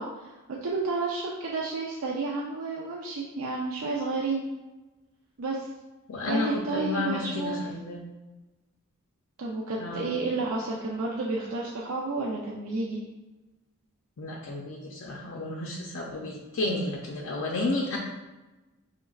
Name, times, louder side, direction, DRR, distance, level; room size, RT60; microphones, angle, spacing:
voice 1, 0.0-4.5 5.4-5.7 6.3-7.6 9.4-13.0, right 3 dB, 70° right, -3 dB, 0.5 m, -31 dB
voice 2, 6.1-8.0 9.8-10.2 14.2-18.0, left 2 dB, 60° left, -1 dB, 0.4 m, -31 dB
5.1 x 3.2 x 2.3 m, 1.1 s
head